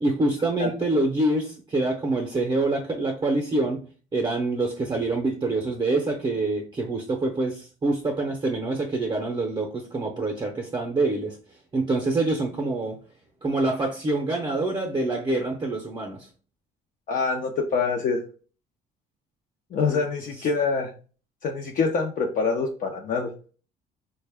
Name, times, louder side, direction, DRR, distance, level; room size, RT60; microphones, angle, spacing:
voice 1, 0.0-3.8 4.1-11.4 11.7-13.0 13.4-16.3, right 2 dB, 25° right, 1 dB, 0.7 m, -26 dB
voice 2, 17.1-18.2 19.7-20.9 21.4-23.3, left 4 dB, 50° left, 1 dB, 0.6 m, -25 dB
4.0 x 2.2 x 3.4 m, 0.39 s
cardioid pair, 110°, 17 cm